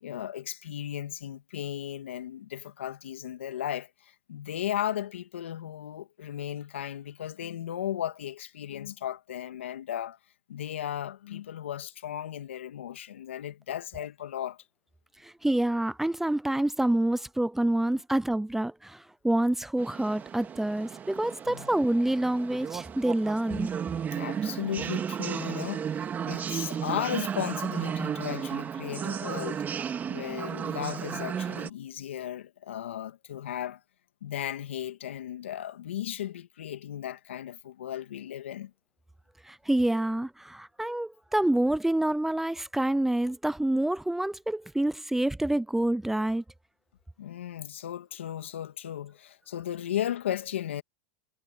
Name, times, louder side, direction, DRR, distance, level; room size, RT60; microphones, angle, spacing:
voice 1, 0.0-10.2 10.5-14.6 21.5-21.7 24.1-29.6 30.1-33.8 34.2-38.7 47.2-50.8, left 11 dB, 85° left, 2.2 m, -35 dB
voice 2, 15.2-23.7 39.4-46.4, right 1 dB, 5° right, 0.6 m, -27 dB
sound 1, 19.8-31.7, right 8 dB, 30° right, 2.1 m, -34 dB
hypercardioid pair, 105°, 6 cm